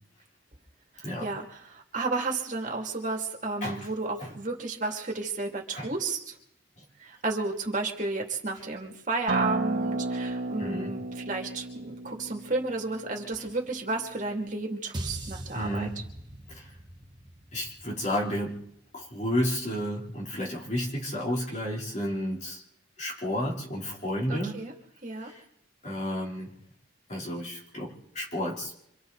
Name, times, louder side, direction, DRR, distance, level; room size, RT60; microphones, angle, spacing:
voice 1, 0.9-6.4 7.0-15.9 24.3-24.7 25.0-25.3, right 3 dB, 40° right, 1 dB, 2.5 m, -32 dB
Acoustic guitar, 9.3-14.5, right 2 dB, 70° right, 1.7 m, -33 dB
voice 2, 10.6-10.9 15.5-16.0 16.5-16.7 17.5-18.7 18.9-22.6 23.0-24.7 25.8-26.5 27.1-28.7, equal, 35° left, -2 dB, 3.4 m, -31 dB
sound 1, 14.9-19.3, right 1 dB, 20° right, 1.4 m, -42 dB
26.0 x 25.0 x 4.1 m, 0.79 s
head